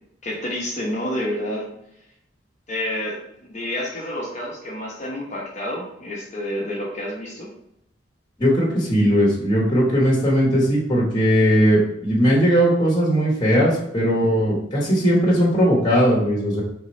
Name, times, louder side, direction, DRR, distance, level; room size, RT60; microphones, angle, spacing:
voice 1, 0.2-1.7 2.7-7.5, left 1 dB, 40° left, -3 dB, 0.9 m, -29 dB
voice 2, 8.4-16.6, equal, 25° left, -5 dB, 1.2 m, -18 dB
3.6 x 3.0 x 4.2 m, 0.76 s
head